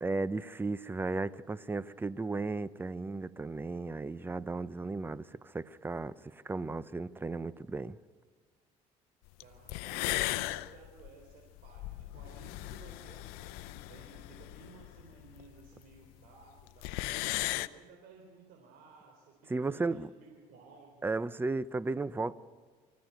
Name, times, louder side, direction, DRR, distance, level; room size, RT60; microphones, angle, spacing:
voice 1, 0.0-8.0 19.5-20.1 21.0-22.3, right 3 dB, 15° right, 0.6 m, -35 dB
sound 1, 9.4-9.5 9.7-15.7 16.0-16.1 16.3-16.4 16.6-17.7, left 19 dB, 90° left, 0.6 m, -37 dB
voice 2, 9.4-17.0 17.5-21.1, right 5 dB, 75° right, 3.7 m, -56 dB
25.0 x 14.5 x 9.2 m
cardioid pair, 95°, 15 cm